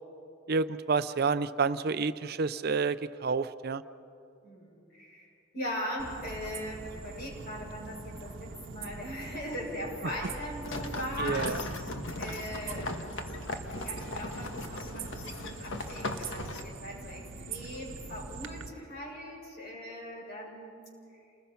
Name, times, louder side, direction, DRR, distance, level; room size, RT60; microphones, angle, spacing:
voice 1, 0.5-3.8 11.2-11.6, right 4 dB, 50° right, 14 dB, 0.5 m, -29 dB
voice 2, 4.4-5.3 5.5-11.5 12.2-13.2 13.8-20.8, equal, 55° left, -3 dB, 7.0 m, -40 dB
sound 1, 6.0-18.7, right 4 dB, 70° right, 1.0 m, -43 dB
sound 2, 10.6-16.6, left 2 dB, 75° left, 1.5 m, -38 dB
29.0 x 20.5 x 5.7 m, 2.6 s
head